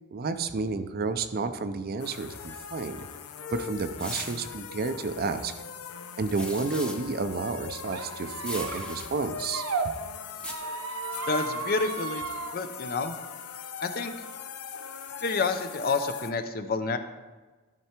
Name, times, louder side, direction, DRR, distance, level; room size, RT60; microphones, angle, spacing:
voice 1, 0.1-3.1 3.5-5.5 6.2-9.6, right 4 dB, 45° right, 9 dB, 0.5 m, -31 dB
sound 1, 2.0-16.3, left 7 dB, 85° left, 0.6 m, -40 dB
sound 2, 4.0-4.5 6.3-7.0 8.4-9.1 10.4-10.5, left 1 dB, 5° left, 0.8 m, -38 dB
Squeak, 7.9-9.9 10.4-12.5, right 5 dB, 85° right, 0.8 m, -35 dB
voice 2, 11.3-12.2 12.5-13.1 13.8-14.1 15.2-17.0, left 4 dB, 45° left, 8 dB, 0.6 m, -29 dB
13.0 x 4.7 x 4.4 m, 1.3 s
head